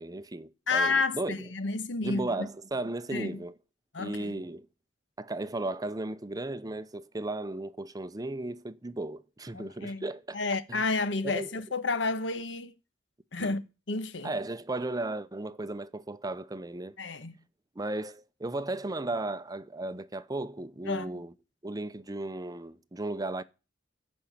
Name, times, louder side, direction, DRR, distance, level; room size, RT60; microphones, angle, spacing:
voice 1, 0.0-1.5 2.0-3.5 4.0-4.7 5.2-10.4 10.7-10.8 11.2-11.5 13.4-13.6 14.2-16.9 17.8-21.3 21.6-23.4, right 2 dB, 20° right, 0.6 m, -35 dB
voice 2, 0.7-2.5 3.1-3.4 3.9-4.4 9.5-10.1 10.3-12.7 13.3-13.6 13.9-14.3 17.0-17.3 20.9-21.2, left 3 dB, 75° left, 1.2 m, -30 dB
15.0 x 5.5 x 8.5 m
head